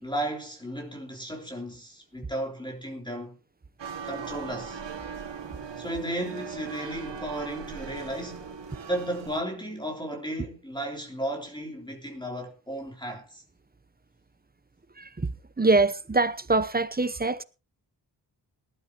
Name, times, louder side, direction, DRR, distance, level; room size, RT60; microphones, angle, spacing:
voice 1, 0.0-3.4 4.0-4.8 5.8-8.5 8.9-13.4, right 1 dB, 10° left, 3.4 m, -34 dB
sound 1, 3.8-9.4, right 6 dB, 80° right, 2.1 m, -39 dB
voice 2, 15.0-15.3 15.6-17.4, right 3 dB, 20° right, 0.9 m, -24 dB
19.5 x 12.5 x 3.0 m
wide cardioid pair, 85°, 43 cm